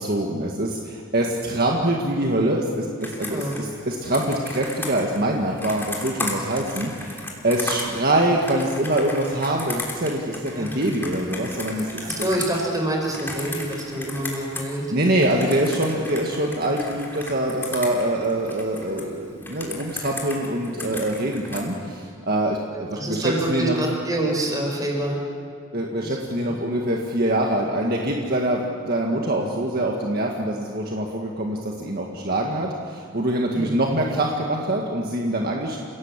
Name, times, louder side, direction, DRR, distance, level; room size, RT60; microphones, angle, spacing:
voice 1, 0.0-12.0 14.9-23.8 25.7-35.8, right 1 dB, 50° right, 0 dB, 1.8 m, -24 dB
Computer keyboard, 3.0-14.7 15.0-19.0 19.4-21.7, left 2 dB, 10° left, 3.4 m, -35 dB
voice 2, 3.3-3.6 10.5-10.7 12.0-14.9 22.7-25.2 26.0-26.2 26.4-26.5 33.5-33.7, right 1 dB, 20° right, 0 dB, 4.8 m, -26 dB
30.0 x 17.0 x 7.4 m, 2.2 s
head